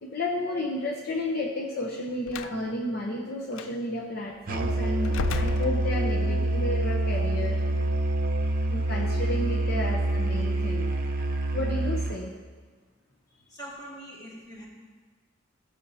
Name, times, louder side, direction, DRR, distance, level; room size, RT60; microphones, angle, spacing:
voice 1, 0.0-7.6 8.7-10.9 11.5-12.3, left 1 dB, 55° left, -2 dB, 0.8 m, -32 dB
Slam, 2.3-2.6 3.5-3.7 5.0-6.3, left 6 dB, 85° left, 0.3 m, -34 dB
Musical instrument, 4.5-12.3, right 1 dB, 45° right, 0.7 m, -26 dB
voice 2, 6.0-6.4 13.5-14.7, right 1 dB, 20° left, -5 dB, 2.2 m, -44 dB
15.5 x 6.7 x 2.8 m, 1.4 s
head